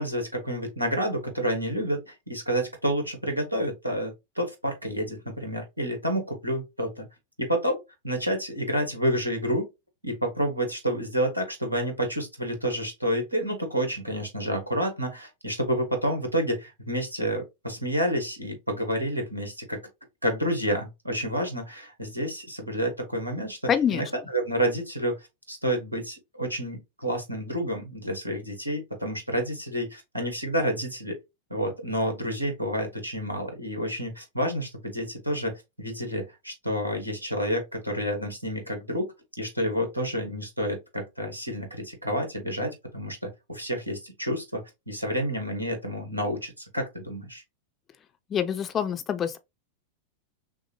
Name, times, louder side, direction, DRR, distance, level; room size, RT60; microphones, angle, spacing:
voice 1, 0.0-7.0 7.4-9.7 10.0-19.8 20.2-23.6 23.9-31.2 31.5-47.4, equal, 85° right, 1.4 m, -29 dB
voice 2, 23.7-24.1 48.3-49.4, left 8 dB, 25° left, 0.5 m, -26 dB
6.1 x 2.1 x 3.0 m
figure-of-eight pair, 90°, 0 cm